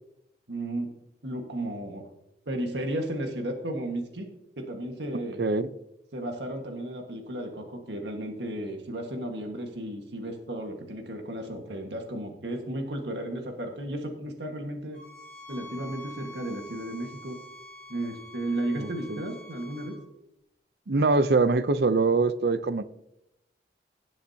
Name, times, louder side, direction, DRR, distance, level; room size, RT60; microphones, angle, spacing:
voice 1, 0.5-0.9 1.2-2.0 2.4-4.3 4.6-5.4 6.1-15.0 15.5-17.4 17.9-20.0, right 1 dB, 85° right, 1.6 m, -34 dB
voice 2, 5.4-5.7 18.8-19.2 20.9-22.8, right 3 dB, 70° right, 0.6 m, -23 dB
sound 1, 14.9-20.0, left 1 dB, 5° left, 2.6 m, -46 dB
17.5 x 7.2 x 2.8 m
head